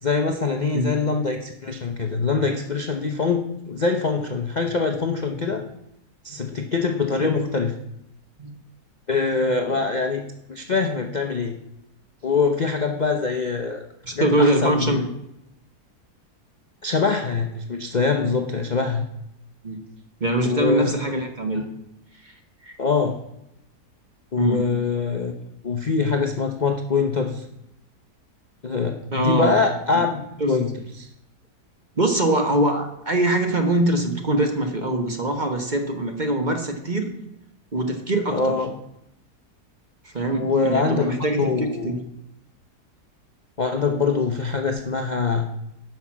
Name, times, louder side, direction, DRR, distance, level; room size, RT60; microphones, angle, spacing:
voice 1, 0.0-5.6 6.2-7.7 9.1-10.2 10.5-11.5 12.2-13.8 14.1-15.1 16.8-19.0 20.4-21.1 22.8-23.2 24.3-25.3 25.6-27.4 28.6-30.2 30.5-30.7 31.0-31.1 38.3-38.7 40.3-41.1 41.4-41.9 43.6-45.5, left 4 dB, 40° left, 4 dB, 0.6 m, -23 dB
voice 2, 14.0-15.0 19.6-19.8 20.2-21.6 22.2-22.3 22.6-22.8 24.4-24.7 29.1-29.6 30.4-30.6 32.0-37.1 37.7-38.6 40.0-42.0, right 1 dB, 30° right, 4 dB, 1.1 m, -23 dB
10.5 x 5.9 x 7.3 m, 0.83 s
omnidirectional pair, 1.7 m